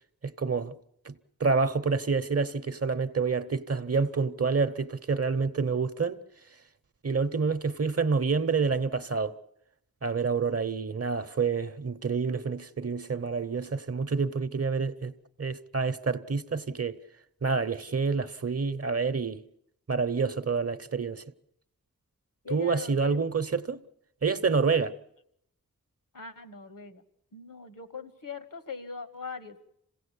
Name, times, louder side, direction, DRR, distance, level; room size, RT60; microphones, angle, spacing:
voice 1, 0.2-0.8 1.0-1.1 1.4-6.2 7.0-9.3 10.0-15.1 15.4-17.0 17.4-19.4 19.9-21.2 22.5-23.8 24.2-24.9, right 5 dB, 45° right, 0.9 m, -28 dB
voice 2, 22.4-23.3 26.1-27.0 27.3-29.7, left 5 dB, 70° left, 1.5 m, -41 dB
27.0 x 17.0 x 8.4 m
wide cardioid pair, 80°, 34 cm